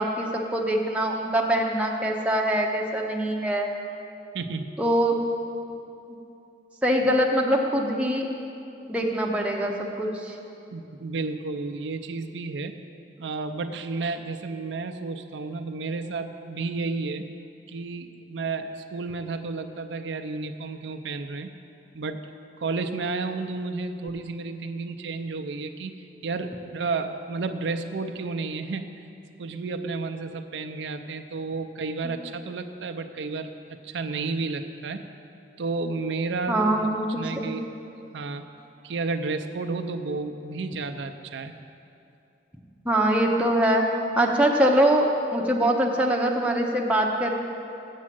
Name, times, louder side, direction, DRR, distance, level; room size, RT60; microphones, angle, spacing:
voice 1, 0.0-3.7 4.8-5.2 6.8-8.3 8.9-9.7 10.0-10.4 32.0-32.1 36.5-37.5 42.8-43.9 44.2-47.3, right 1 dB, 5° right, -1 dB, 0.7 m, -23 dB
voice 2, 4.3-4.7 10.7-12.7 13.2-17.3 17.7-21.5 21.9-22.2 22.6-28.9 29.4-33.5 33.8-35.1 35.6-36.9 37.2-37.7 38.1-38.4 38.8-41.5, right 3 dB, 85° right, 6 dB, 0.5 m, -31 dB
7.4 x 7.2 x 7.5 m, 2.7 s
head